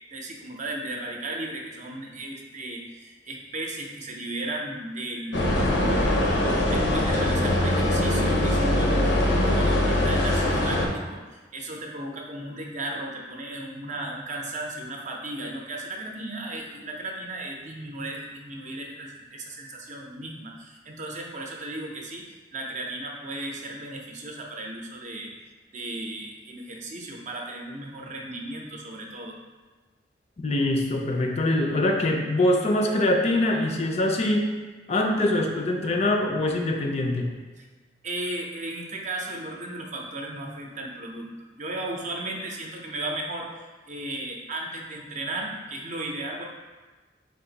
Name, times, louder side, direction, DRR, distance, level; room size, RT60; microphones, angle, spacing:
voice 1, 0.1-6.0 6.4-11.2 11.5-22.3 22.5-25.3 25.7-29.4 37.6-37.7 38.0-43.5 43.9-46.4, right 1 dB, 45° right, 0 dB, 0.6 m, -35 dB
sound 1, 5.3-10.9, left 1 dB, 85° left, 0.7 m, -22 dB
voice 2, 30.4-34.5 34.9-37.3, left 1 dB, 40° left, 2 dB, 0.5 m, -23 dB
4.7 x 2.5 x 3.9 m, 1.3 s
head